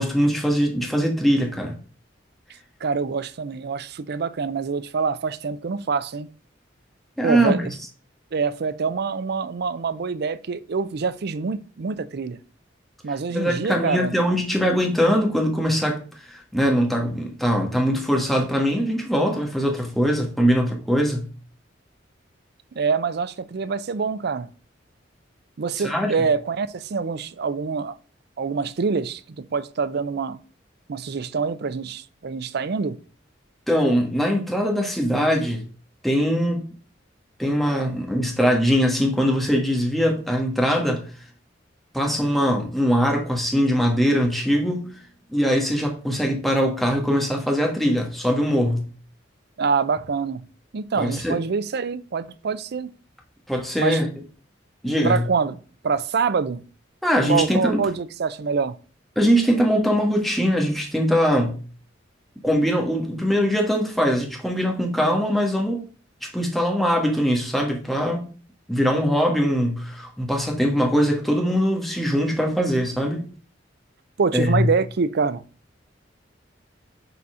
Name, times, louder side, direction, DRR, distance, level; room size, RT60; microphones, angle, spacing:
voice 1, 0.0-1.7 7.2-7.6 13.3-16.0 16.3-21.3 25.8-26.1 33.7-35.6 36.0-36.7 37.4-41.0 41.9-44.9 45.3-48.9 51.0-51.4 53.5-54.1 54.8-55.2 57.0-57.8 59.1-61.6 62.4-65.8 66.2-68.3 68.7-73.2 74.3-74.7, equal, ahead, 1.5 m, -22 dB
voice 2, 2.8-6.3 7.2-7.7 8.3-12.4 13.0-14.1 22.7-24.5 25.6-27.9 28.4-30.4 30.9-33.0 49.6-50.4 50.7-52.9 53.8-54.0 55.0-55.6 55.8-56.6 57.3-58.7 74.2-75.4, right 5 dB, 60° right, 0.5 m, -25 dB
6.9 x 4.2 x 4.9 m
head